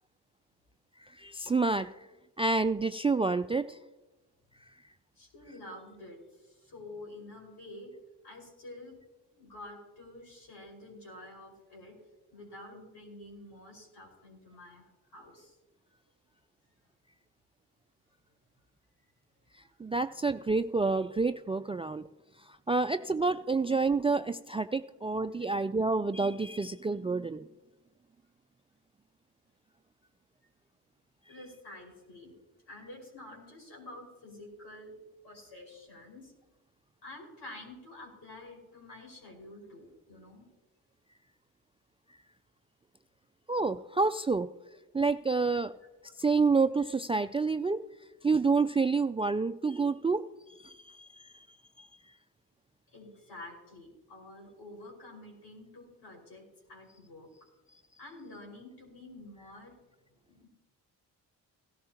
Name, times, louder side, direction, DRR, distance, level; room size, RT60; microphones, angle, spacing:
voice 1, 1.2-1.9 2.4-3.8 19.8-22.0 22.7-27.4 43.5-44.5 44.9-45.7 46.2-47.8 48.2-50.2 50.6-51.5 51.8-51.9, right 4 dB, 15° right, 13 dB, 0.3 m, -28 dB
voice 2, 5.2-7.9 8.2-9.0 9.3-12.0 12.3-15.6 19.6-19.8 31.3-32.3 32.7-34.9 35.2-36.3 37.0-40.5 52.9-57.3 58.0-59.7 60.3-60.5, left 1 dB, 70° left, -2 dB, 5.4 m, -49 dB
17.0 x 13.0 x 2.9 m, 1.1 s
supercardioid pair, 55°, 41 cm